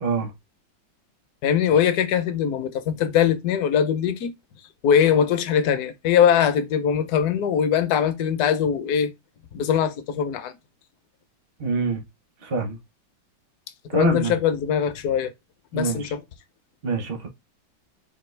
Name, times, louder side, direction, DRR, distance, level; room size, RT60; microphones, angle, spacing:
voice 1, 0.0-0.3 11.6-12.0 12.4-12.8 13.9-14.3 15.7-16.1 16.8-17.3, right 3 dB, 50° right, 0.6 m, -25 dB
voice 2, 1.4-4.3 4.8-9.1 9.5-10.5 13.9-15.3 15.7-16.2, left 8 dB, 70° left, 0.9 m, -21 dB
5.1 x 2.6 x 3.2 m
omnidirectional pair, 2.2 m